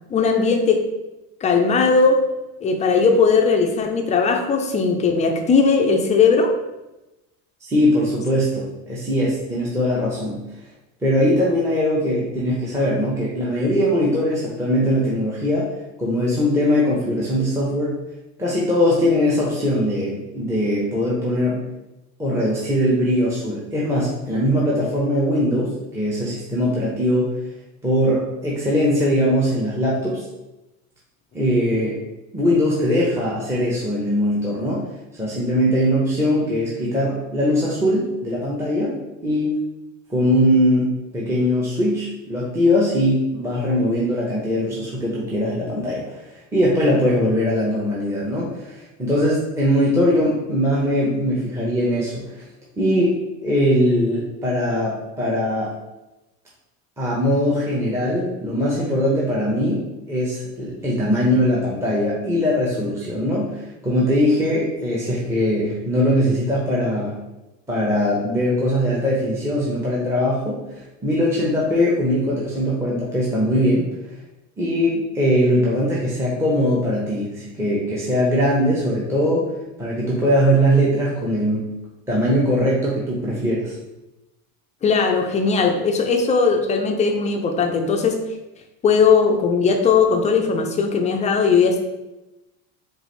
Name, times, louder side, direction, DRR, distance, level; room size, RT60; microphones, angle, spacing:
voice 1, 0.1-0.8 1.4-2.2 2.6-6.5 84.8-88.2 88.8-91.8, left 5 dB, 20° left, 3 dB, 0.4 m, -18 dB
voice 2, 7.7-10.4 11.0-15.7 16.0-17.9 18.4-21.6 22.2-27.3 27.8-30.2 31.3-32.0 32.3-34.8 35.2-38.9 39.2-39.5 40.1-46.2 46.5-52.4 52.8-53.1 53.4-55.7 57.0-59.8 60.1-67.1 67.7-70.6 71.0-73.8 74.6-79.4 79.8-81.7 82.1-83.7, equal, 5° right, -6 dB, 0.7 m, -21 dB
4.7 x 2.6 x 3.2 m, 0.98 s
supercardioid pair, 115°, 42 cm